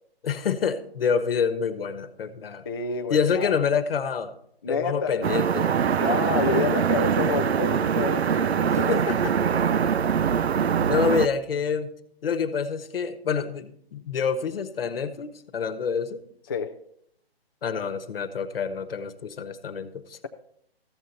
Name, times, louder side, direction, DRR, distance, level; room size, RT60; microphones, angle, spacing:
voice 1, 0.2-2.6 3.1-4.3 4.7-5.7 8.9-9.3 10.9-11.9 12.2-16.2 17.6-20.2, left 6 dB, 65° left, 11 dB, 1.2 m, -27 dB
voice 2, 2.6-3.6 4.6-5.2 6.0-9.0 16.5-16.7, left 5 dB, 25° left, 5 dB, 0.3 m, -29 dB
sound 1, 5.2-11.3, right 7 dB, 90° right, 0.6 m, -23 dB
14.0 x 7.7 x 4.1 m, 0.71 s
hypercardioid pair, 140°, 31 cm